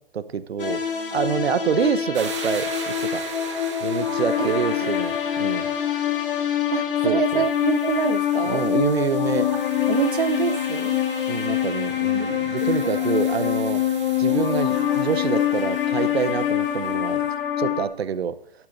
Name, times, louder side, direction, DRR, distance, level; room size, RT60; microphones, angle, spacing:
voice 1, 0.1-0.8 1.1-3.3 3.8-5.7 7.0-7.4 8.4-9.5 11.3-13.8 14.2-17.2 17.6-18.4, right 7 dB, 90° right, 13 dB, 0.9 m, -26 dB
sound 1, 0.6-17.9, left 10 dB, 60° left, 1.5 m, -24 dB
sound 2, 2.1-17.3, right 6 dB, 30° right, 1.1 m, -41 dB
voice 2, 4.4-4.9 6.7-8.7 9.9-11.0 12.1-13.1, right 9 dB, 55° right, 12 dB, 0.5 m, -27 dB
12.0 x 11.0 x 2.6 m, 0.72 s
hypercardioid pair, 175°, 31 cm